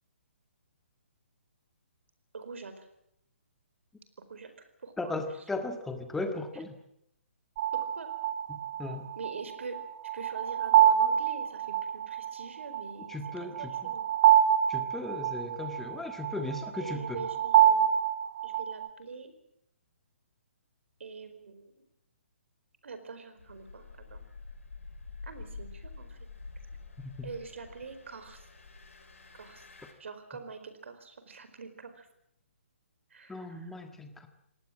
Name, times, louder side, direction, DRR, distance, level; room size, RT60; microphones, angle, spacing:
voice 1, 2.3-2.9 4.3-5.4 6.5-6.6 7.7-8.1 9.1-9.8 10.1-14.1 16.8-17.8 18.4-19.3 21.0-21.7 22.8-24.2 25.2-26.2 27.2-28.4 29.3-29.6 30.0-32.1 33.1-33.8, right 4 dB, 70° right, 10 dB, 4.6 m, -44 dB
voice 2, 5.0-6.8 8.5-9.1 13.1-13.6 14.7-17.0 33.3-34.3, left 2 dB, 5° left, 6 dB, 1.6 m, -36 dB
sound 1, 7.6-18.9, right 10 dB, 30° right, 1.1 m, -26 dB
Engine, 23.4-29.9, left 4 dB, 90° left, 6.8 m, -47 dB
25.0 x 18.5 x 7.6 m, 0.78 s
hypercardioid pair, 160°, 7 cm